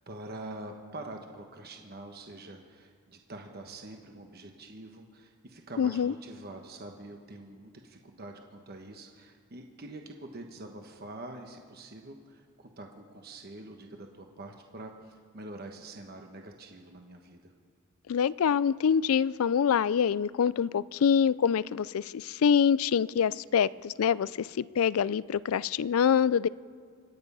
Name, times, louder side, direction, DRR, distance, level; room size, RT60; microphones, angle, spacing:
voice 1, 0.0-17.5, right 2 dB, 45° right, 3 dB, 1.1 m, -45 dB
voice 2, 5.8-6.1 18.1-26.5, left 7 dB, 75° left, 20 dB, 0.4 m, -25 dB
25.5 x 9.4 x 5.5 m, 2.1 s
head